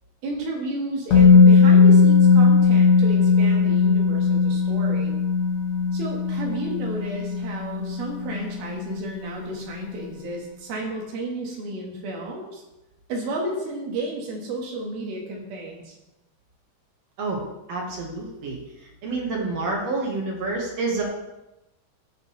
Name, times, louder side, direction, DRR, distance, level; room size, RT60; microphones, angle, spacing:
voice 1, 0.2-5.2 5.9-12.6 13.1-16.0, right 1 dB, 75° right, 0 dB, 3.6 m, -32 dB
Musical instrument, 1.1-9.0 9.3-9.5, left 5 dB, 55° left, 2.2 m, -17 dB
voice 2, 17.7-18.6 19.0-21.0, right 3 dB, 55° right, -1 dB, 2.2 m, -28 dB
14.5 x 6.6 x 3.3 m, 0.97 s
omnidirectional pair, 4.4 m